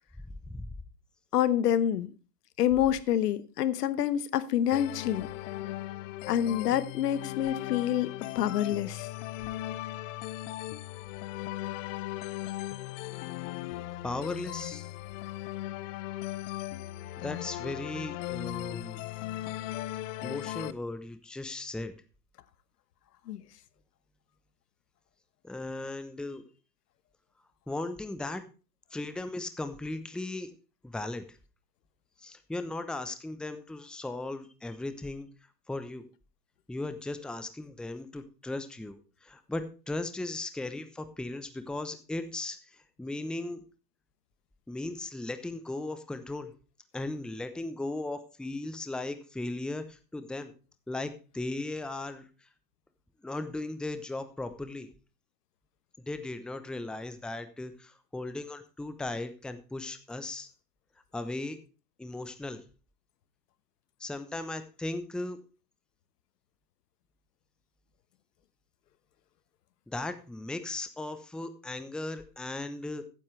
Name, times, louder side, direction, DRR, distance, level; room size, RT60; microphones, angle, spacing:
voice 1, 1.3-2.1 2.6-5.3 6.3-8.1 8.3-9.1 23.3-23.4, left 10 dB, 75° left, 1.2 m, -27 dB
sound 1, 4.7-20.7, left 15 dB, 50° left, 0.8 m, -38 dB
voice 2, 14.0-14.9 17.2-19.0 20.2-21.9 25.4-26.4 27.7-28.4 28.9-30.5 30.8-31.4 32.2-35.3 35.7-36.0 36.7-43.6 44.7-46.5 46.9-50.5 50.9-52.5 53.2-54.9 56.1-60.5 61.1-61.6 62.0-62.6 64.0-65.4 69.9-73.0, left 2 dB, ahead, 0.8 m, -37 dB
14.0 x 9.8 x 3.3 m
hypercardioid pair, 115°, 48 cm